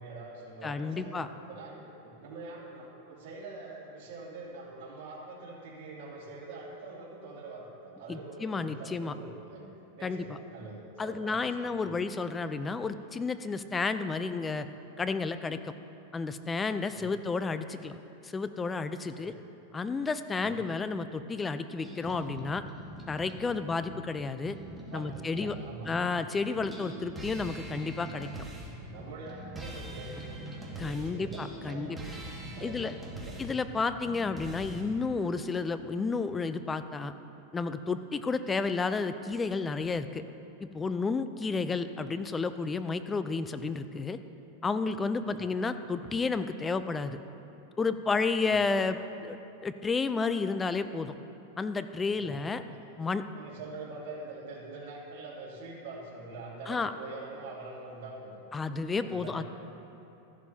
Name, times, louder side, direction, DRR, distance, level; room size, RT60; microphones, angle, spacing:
voice 1, 0.0-9.6 9.9-12.0 16.9-17.1 19.1-19.3 20.4-20.6 23.5-23.8 24.9-25.9 28.7-32.0 32.5-33.4 45.2-45.4 48.4-48.6 52.0-52.8 53.3-58.4 59.0-59.4, right 3 dB, 60° right, -6 dB, 2.8 m, -45 dB
voice 2, 0.6-1.3 8.1-9.1 10.0-10.4 11.0-14.7 15.0-15.7 16.1-18.0 18.2-19.3 19.7-22.6 23.1-24.6 24.9-25.6 25.9-28.3 30.8-32.0 32.6-32.9 33.4-37.1 37.5-40.2 40.6-44.2 44.6-47.2 47.8-49.4 49.6-51.1 51.6-52.6 53.0-53.2 56.7-56.9 58.5-59.4, left 4 dB, 15° left, 11 dB, 0.4 m, -31 dB
sound 1, 21.8-26.2 26.6-34.8, right 1 dB, 10° right, 1.5 m, -43 dB
14.0 x 11.0 x 2.8 m, 2.9 s
supercardioid pair, 130°, 0 cm